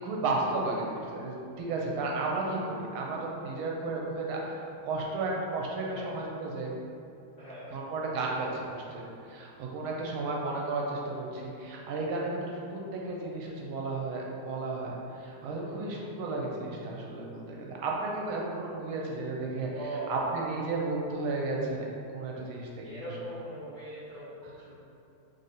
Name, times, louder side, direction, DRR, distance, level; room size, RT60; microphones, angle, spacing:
voice 1, 0.0-6.7 7.7-19.7 20.1-21.9 22.1-23.1, right 3 dB, 80° right, -2 dB, 1.5 m, -33 dB
voice 2, 7.4-7.8 15.5-16.0 19.7-20.4 22.8-24.7, right 1 dB, 50° left, -12 dB, 0.9 m, -41 dB
3.3 x 2.6 x 4.1 m, 2.6 s
omnidirectional pair, 2.3 m